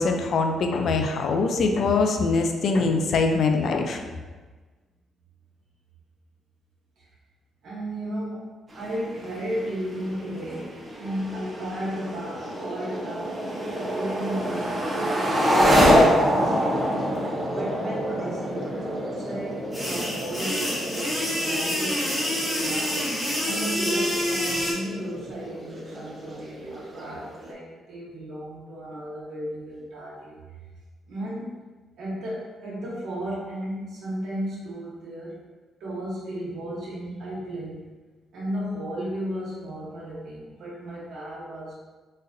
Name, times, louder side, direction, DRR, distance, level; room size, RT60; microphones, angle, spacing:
voice 1, 0.0-4.0, left 4 dB, 65° left, 4 dB, 0.4 m, -23 dB
voice 2, 7.6-8.5 8.7-16.8 17.5-22.9 23.4-30.4 31.1-31.6 32.0-35.3 35.8-37.8 38.3-41.8, right 1 dB, 75° right, -8 dB, 1.0 m, -34 dB
sound 1, 8.7-27.5, equal, 25° right, 0.8 m, -27 dB
sound 2, 19.7-24.7, left 1 dB, 5° left, 1.2 m, -27 dB
4.0 x 2.5 x 2.6 m, 1.3 s
cardioid pair, 90°, 0 cm